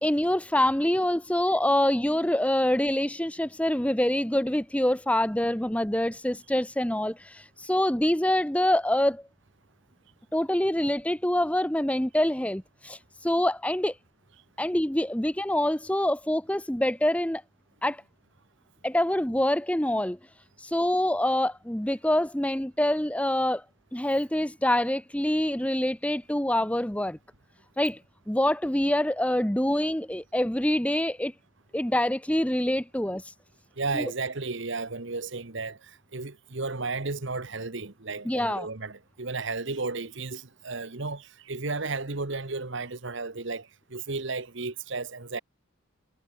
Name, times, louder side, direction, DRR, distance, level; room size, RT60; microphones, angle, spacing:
voice 1, 0.0-9.2 10.3-13.9 14.6-17.4 17.8-18.0 18.8-20.2 20.6-23.6 23.9-27.2 27.8-28.0 28.3-31.3 31.7-33.2 33.9-34.1 38.2-38.7, left 1 dB, 5° left, 0.8 m, -25 dB
voice 2, 33.8-45.4, right 3 dB, 55° right, 1.3 m, -33 dB
head